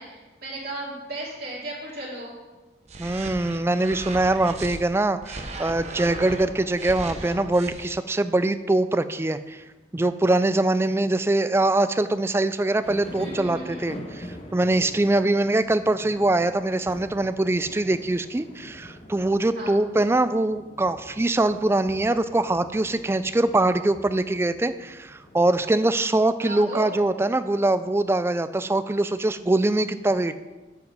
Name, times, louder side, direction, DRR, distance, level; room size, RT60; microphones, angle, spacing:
voice 1, 0.0-2.3 13.2-13.8 19.5-19.8 26.4-27.0, right 2 dB, 60° right, -6 dB, 2.8 m, -35 dB
sound 1, 2.9-4.8 5.2-7.9, right 2 dB, 40° right, 0.9 m, -37 dB
voice 2, 3.0-9.6 9.9-14.3 14.5-30.4, right 2 dB, 15° right, 12 dB, 0.3 m, -23 dB
sound 2, 12.8-25.6, left 1 dB, 35° left, 1.1 m, -44 dB
7.9 x 7.9 x 5.3 m, 1.2 s
head